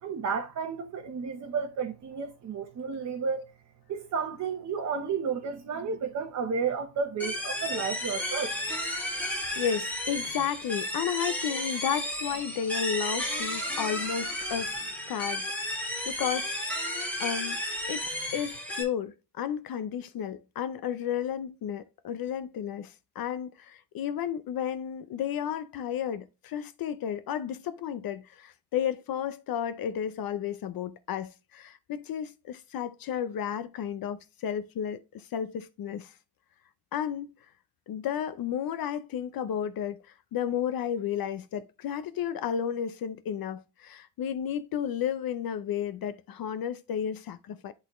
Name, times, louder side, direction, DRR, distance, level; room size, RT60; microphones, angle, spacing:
voice 1, 0.0-3.5 3.9-8.6, right 5 dB, 40° right, 0.9 m, -32 dB
sound 1, 7.2-18.8, equal, 5° left, 2.0 m, -33 dB
voice 2, 9.6-14.8 15.1-16.7 17.2-17.6 17.9-18.0 18.3-36.1 36.9-37.3 37.9-47.7, left 9 dB, 55° left, 0.6 m, -33 dB
10.5 x 4.0 x 3.0 m
cardioid pair, 180°, 42 cm